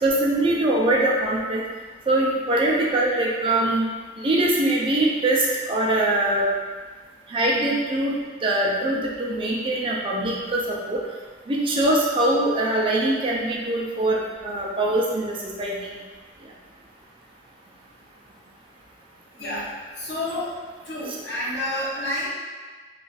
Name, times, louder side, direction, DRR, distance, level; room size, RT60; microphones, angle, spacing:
voice 1, 0.0-1.6 2.1-3.9 4.2-6.5 7.3-8.1 8.4-11.0 11.5-15.9 19.5-19.6, right 1 dB, 30° right, -3 dB, 0.4 m, -22 dB
voice 2, 20.0-20.5 20.9-22.3, left 1 dB, 75° left, -8 dB, 1.1 m, -29 dB
2.4 x 2.4 x 4.0 m, 1.4 s
head